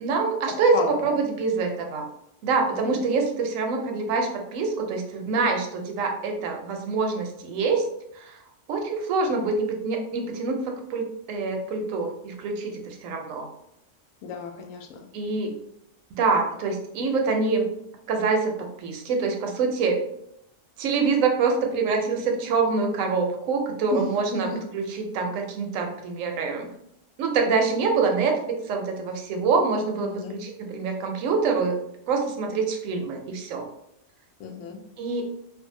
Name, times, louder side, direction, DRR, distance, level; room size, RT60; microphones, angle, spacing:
voice 1, 0.0-2.1 2.4-7.8 8.1-8.4 8.7-13.5 15.1-15.6 16.1-17.7 18.1-18.5 18.8-20.0 20.8-26.7 27.2-31.8 32.1-33.7 35.0-35.2, right 4 dB, 80° right, 3 dB, 0.9 m, -25 dB
voice 2, 0.7-1.1 2.7-3.0 14.2-15.0 23.9-24.6 30.0-30.3 34.4-34.8, left 4 dB, 80° left, 2 dB, 0.9 m, -33 dB
2.6 x 2.3 x 2.6 m, 0.77 s
omnidirectional pair, 1.4 m